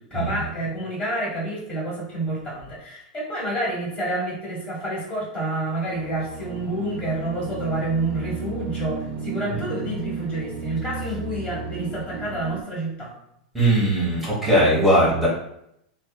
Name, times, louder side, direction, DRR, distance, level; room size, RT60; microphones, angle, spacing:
voice 1, 0.0-13.1 13.6-13.7, right 1 dB, 30° left, -5 dB, 1.4 m, -28 dB
sound 1, 5.6-12.6, right 4 dB, 40° right, 0.5 m, -34 dB
voice 2, 13.5-15.3, right 1 dB, 5° right, -7 dB, 1.1 m, -19 dB
2.5 x 2.2 x 2.3 m, 0.76 s
hypercardioid pair, 105°, 4 cm